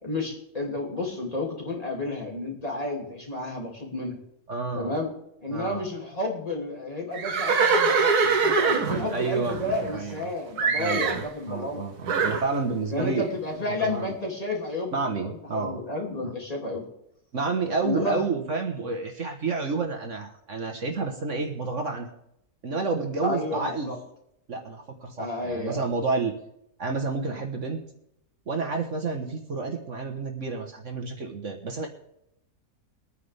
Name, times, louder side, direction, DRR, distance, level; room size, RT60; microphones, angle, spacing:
voice 1, 0.0-4.2 4.7-5.1 5.4-11.8 12.9-16.8 17.8-18.3 23.2-24.0 25.2-25.8, left 2 dB, 25° left, -1 dB, 2.8 m, -31 dB
voice 2, 4.5-4.9 5.5-5.8 8.9-9.6 9.9-10.3 10.8-11.1 11.5-13.4 13.7-14.1 14.9-15.8 16.2-16.3 17.3-22.1 22.6-23.9 24.5-26.3 26.8-27.8 28.5-31.9, right 4 dB, 55° right, 4 dB, 1.6 m, -30 dB
Livestock farm animals working animals, 7.1-10.2 10.6-11.3 12.1-12.5, right 5 dB, 90° right, 1.7 m, -23 dB
23.5 x 9.5 x 3.5 m, 0.78 s
omnidirectional pair, 1.6 m